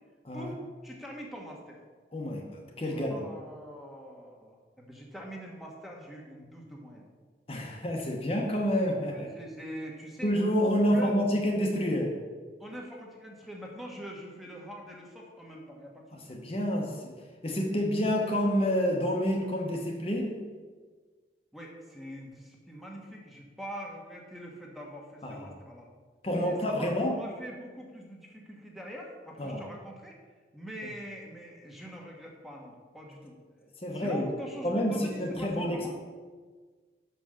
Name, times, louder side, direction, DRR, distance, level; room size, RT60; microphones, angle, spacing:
voice 1, 0.3-1.8 2.9-7.1 9.1-10.3 10.8-11.2 12.6-16.2 21.5-25.9 26.2-30.2 30.5-33.4 33.9-36.0, equal, ahead, -1 dB, 1.1 m, -44 dB
voice 2, 2.1-3.3 7.5-9.3 10.2-12.2 16.1-17.1 17.4-20.4 25.2-25.5 26.2-27.2 29.4-29.6 33.8-34.3 34.6-36.0, equal, 35° left, 1 dB, 0.9 m, -28 dB
6.0 x 5.6 x 6.4 m, 1.5 s
head